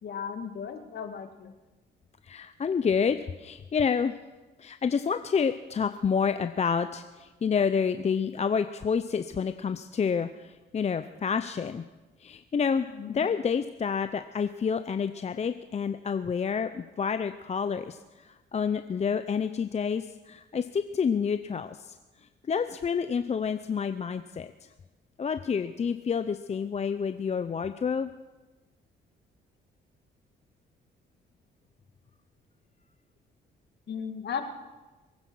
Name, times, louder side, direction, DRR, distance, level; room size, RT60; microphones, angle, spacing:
voice 1, 0.0-1.5 12.9-13.3 33.9-34.4, left 7 dB, 60° left, 7 dB, 2.0 m, -36 dB
voice 2, 2.2-4.1 4.6-11.8 12.2-22.0 22.5-24.5 25.2-28.1, left 6 dB, 35° left, 10 dB, 0.6 m, -29 dB
22.0 x 9.7 x 6.3 m, 1.2 s
cardioid pair, 90°, 20 cm